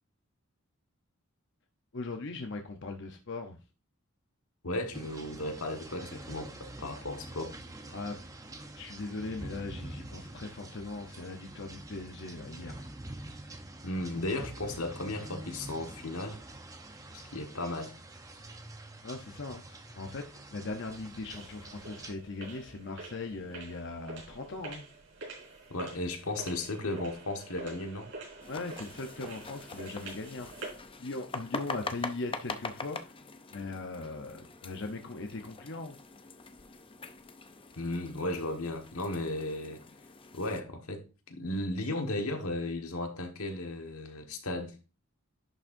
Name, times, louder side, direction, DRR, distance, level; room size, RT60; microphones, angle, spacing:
voice 1, 1.9-3.6 7.9-8.2 8.8-12.8 19.0-24.8 28.5-30.5 31.0-33.1 33.5-36.0, left 3 dB, 55° left, 0.8 m, -39 dB
voice 2, 4.6-7.5 13.8-16.4 17.1-17.9 25.7-28.1 37.8-39.8 40.3-44.7, left 2 dB, 90° left, 1.5 m, -35 dB
sound 1, 4.9-22.1, right 2 dB, 15° right, 0.7 m, -46 dB
sound 2, 20.6-30.9, right 3 dB, 55° right, 4.7 m, -47 dB
sound 3, 28.4-40.6, left 4 dB, 25° left, 0.5 m, -43 dB
10.5 x 6.3 x 2.6 m
head